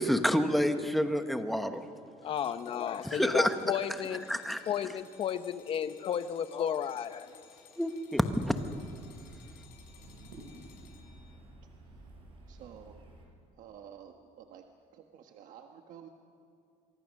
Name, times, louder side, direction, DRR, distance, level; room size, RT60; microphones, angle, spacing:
voice 1, 0.0-1.9 3.0-3.5 4.3-4.6 7.8-8.5, equal, ahead, 7 dB, 1.0 m, -28 dB
voice 2, 2.2-4.3 4.7-7.4, left 9 dB, 40° left, 12 dB, 0.8 m, -33 dB
sound 1, 2.3-11.4, left 9 dB, 80° left, 4.9 m, -59 dB
sound 2, 5.1-10.6, right 2 dB, 90° right, 6.1 m, -59 dB
sound 3, 8.2-13.3, right 1 dB, 35° right, 5.0 m, -53 dB
voice 3, 12.5-13.1 13.6-14.6 14.9-16.1, right 9 dB, 60° right, 4 dB, 1.3 m, -51 dB
27.0 x 24.0 x 6.4 m, 2.5 s
cardioid pair, 160°, 15 cm